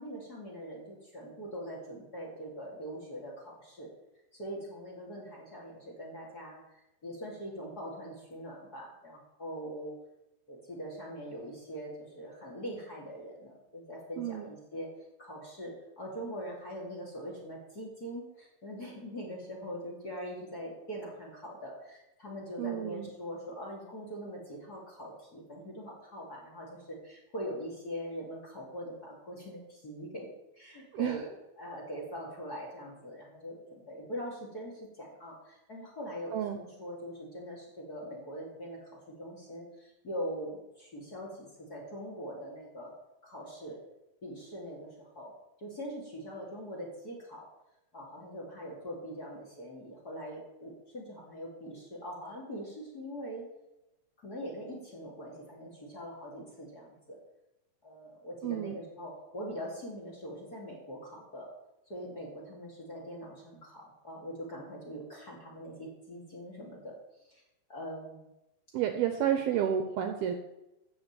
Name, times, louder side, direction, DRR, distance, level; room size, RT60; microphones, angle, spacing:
voice 1, 0.0-3.9 4.3-6.6 7.0-9.9 10.5-14.9 15.2-30.3 30.6-31.3 31.6-38.9 39.2-42.9 43.2-43.8 44.2-45.3 45.6-47.5 47.9-53.4 54.2-57.2 57.8-61.5 61.9-66.9 67.2-67.4 67.7-68.3, equal, 25° left, -1 dB, 2.8 m, -42 dB
voice 2, 14.2-14.5 22.6-23.1 30.9-31.2 36.3-36.6 58.4-58.8 68.7-70.3, right 9 dB, 75° right, 6 dB, 2.4 m, -30 dB
13.5 x 6.1 x 9.0 m, 0.93 s
omnidirectional pair, 5.1 m